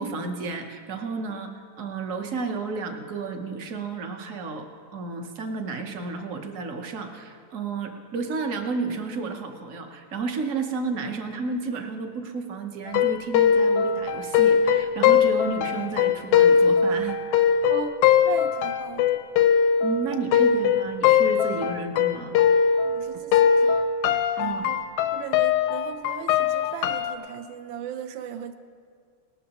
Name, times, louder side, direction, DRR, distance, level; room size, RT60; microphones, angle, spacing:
voice 1, 0.0-1.5 1.8-4.7 4.9-17.2 19.8-22.3 24.4-24.7, right 4 dB, 55° right, 5 dB, 0.9 m, -32 dB
sound 1, 12.9-23.0 23.3-27.1, left 7 dB, 80° left, 1.4 m, -21 dB
voice 2, 17.7-19.0 20.1-20.2 22.8-23.8 24.4-24.8 25.1-28.5, right 8 dB, 75° right, 10 dB, 1.3 m, -37 dB
18.5 x 13.0 x 2.9 m, 2.1 s
omnidirectional pair, 2.4 m